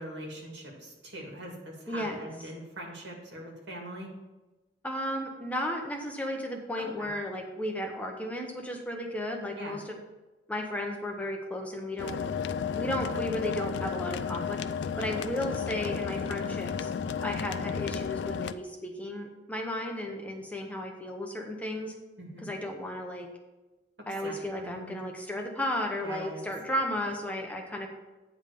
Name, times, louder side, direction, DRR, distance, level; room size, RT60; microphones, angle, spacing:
voice 1, 0.0-4.1 6.8-7.1 9.6-9.8 22.2-22.5 24.0-25.0 26.0-26.4, right 1 dB, 90° right, 0 dB, 2.1 m, -42 dB
voice 2, 1.9-2.3 4.8-10.0 10.5-12.2 12.7-14.6 15.0-16.9 17.2-21.9 22.4-23.3 24.1-27.9, left 1 dB, 10° left, 2 dB, 0.8 m, -34 dB
sound 1, 12.0-18.5, left 6 dB, 75° left, 0.3 m, -33 dB
8.9 x 3.6 x 6.6 m, 1.1 s
head